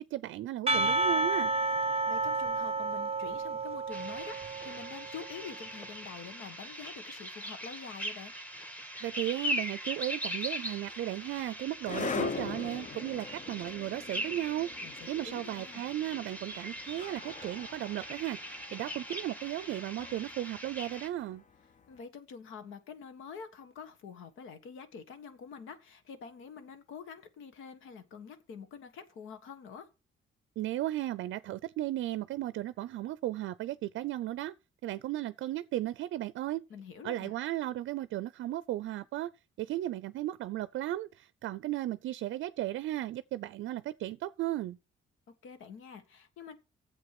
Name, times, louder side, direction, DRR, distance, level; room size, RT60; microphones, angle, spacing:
voice 1, 0.0-1.5 9.0-14.7 15.1-21.4 30.6-34.5 34.8-36.6 37.0-39.3 39.6-44.8, right 14 dB, 75° right, 0.5 m, -35 dB
Percussion / Church bell, 0.7-5.2, right 3 dB, 30° right, 0.6 m, -31 dB
voice 2, 2.1-8.3 14.8-14.9 15.2-15.8 21.9-29.9 36.7-37.3 45.4-46.6, left 6 dB, 85° left, 1.5 m, -46 dB
sound 1, 3.9-21.1, equal, 10° left, 1.7 m, -41 dB
sound 2, 10.7-21.8, left 4 dB, 40° left, 0.8 m, -42 dB
9.7 x 7.5 x 5.8 m
cardioid pair, 90°, 20 cm